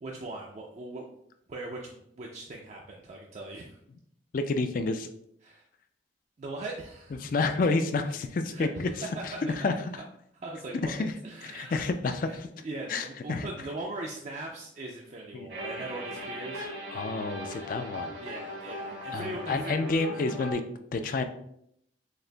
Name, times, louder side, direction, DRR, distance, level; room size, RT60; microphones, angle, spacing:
voice 1, 0.0-1.2 1.5-3.8 5.4-5.6 6.4-7.3 8.5-9.7 10.3-10.9 11.2-11.8 12.2-16.6 18.2-19.7, right 2 dB, 35° right, -1 dB, 0.3 m, -40 dB
voice 2, 4.3-5.1 7.2-8.9 9.2-9.3 9.6-9.7 10.8-11.1 11.5-12.5 12.9-13.4 15.3-15.5 16.6-18.1 19.1-20.6 20.9-21.2, left 3 dB, 45° left, 8 dB, 0.3 m, -29 dB
sound 1, 15.5-20.5, equal, 75° right, 1.3 m, -39 dB
6.4 x 2.5 x 2.2 m, 0.73 s
head